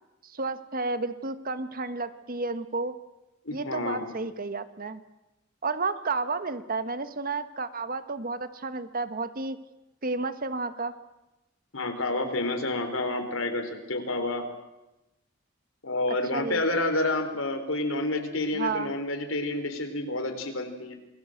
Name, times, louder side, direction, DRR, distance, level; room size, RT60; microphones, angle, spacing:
voice 1, 0.2-2.9 3.5-5.0 5.6-9.6 10.0-10.9 16.1-16.6 18.5-18.9, right 3 dB, 45° right, 11 dB, 1.4 m, -31 dB
voice 2, 3.5-4.1 11.7-14.4 15.8-20.9, left 2 dB, 85° left, 5 dB, 4.1 m, -29 dB
27.5 x 20.0 x 8.0 m, 0.98 s
head